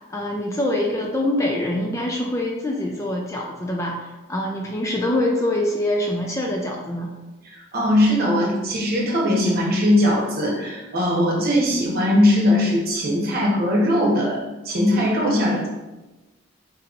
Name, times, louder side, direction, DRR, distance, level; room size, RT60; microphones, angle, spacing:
voice 1, 0.1-7.1, left 1 dB, 15° left, 0 dB, 0.3 m, -24 dB
voice 2, 7.4-15.7, left 1 dB, 45° right, -3 dB, 1.0 m, -20 dB
5.3 x 2.8 x 2.5 m, 1.1 s
head